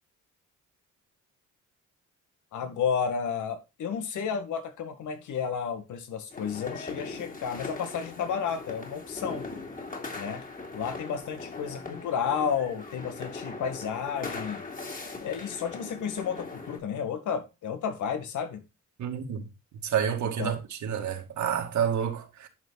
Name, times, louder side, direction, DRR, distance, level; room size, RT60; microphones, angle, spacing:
voice 1, 2.5-9.5 10.2-10.5 10.7-14.7 15.2-18.6 20.2-20.5, left 7 dB, 75° left, 2.1 m, -32 dB
sound 1, 6.3-16.8, left 3 dB, 30° left, 3.0 m, -40 dB
voice 2, 19.0-19.5 19.8-22.5, right 8 dB, 70° right, 2.2 m, -29 dB
11.0 x 6.1 x 4.0 m
cardioid pair, 90°, 30 cm